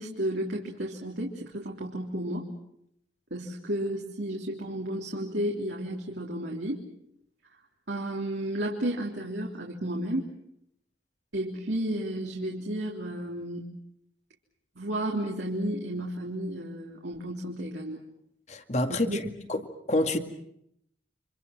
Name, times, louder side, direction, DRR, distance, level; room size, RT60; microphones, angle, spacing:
voice 1, 0.0-2.5 3.3-6.8 7.9-10.3 11.3-13.7 14.8-18.0 18.9-19.3, right 1 dB, 80° right, 3.4 m, -32 dB
voice 2, 18.5-19.2 19.5-19.6 19.9-20.2, left 1 dB, 40° left, 2.2 m, -27 dB
30.0 x 26.5 x 6.0 m
head